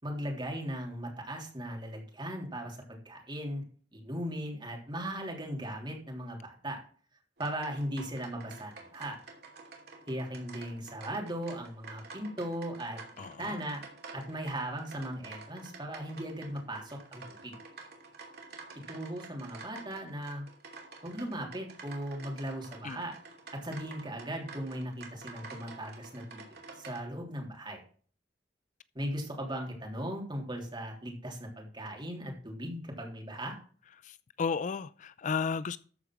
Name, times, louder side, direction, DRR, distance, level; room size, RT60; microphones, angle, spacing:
voice 1, 0.0-3.6 3.9-6.8 7.4-9.2 10.1-13.0 13.4-13.8 14.1-17.5 18.9-20.4 21.0-23.1 23.5-27.8 28.9-33.5, right 1 dB, 25° right, 3.3 m, -38 dB
sound 1, 7.4-27.0, right 4 dB, 65° right, 2.8 m, -50 dB
voice 2, 13.2-13.6 22.8-23.0 34.0-35.8, left 5 dB, 45° left, 0.4 m, -34 dB
13.5 x 4.9 x 6.1 m
head